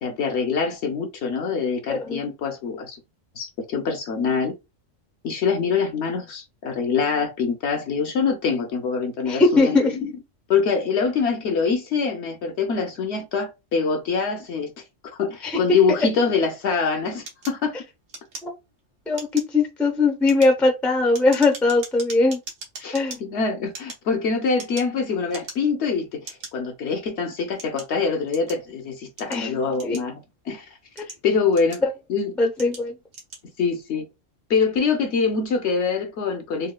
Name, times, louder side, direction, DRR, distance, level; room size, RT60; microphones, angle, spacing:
voice 1, 0.0-3.0 3.4-4.5 5.2-10.1 10.5-14.7 15.2-17.8 22.8-30.6 31.2-31.8 32.1-32.3 33.6-34.1 34.5-36.7, left 5 dB, 65° left, 0.9 m, -24 dB
voice 2, 1.9-2.2 9.3-9.9 15.4-15.6 16.0-16.1 18.4-18.5 19.1-22.4 22.9-23.2 29.3-30.0 32.4-32.9, left 3 dB, ahead, 0.5 m, -20 dB
sound 1, 17.3-18.8 19.1-19.6 20.1-23.2 23.7-25.0 25.3-25.8 26.2-26.5 27.2-28.7 29.2-30.3 30.8-32.0 32.5-32.8 33.1-33.4, right 3 dB, 80° right, 1.4 m, -40 dB
4.0 x 2.2 x 2.2 m
omnidirectional pair, 1.3 m